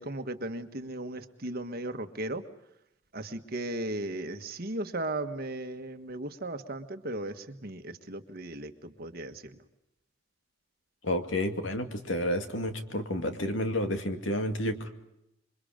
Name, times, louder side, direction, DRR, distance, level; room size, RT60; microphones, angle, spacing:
voice 1, 0.0-2.4 3.1-9.6, right 1 dB, 50° right, 7 dB, 1.5 m, -36 dB
voice 2, 11.0-14.9, left 1 dB, 75° left, 6 dB, 2.3 m, -30 dB
28.0 x 23.5 x 5.1 m, 0.84 s
head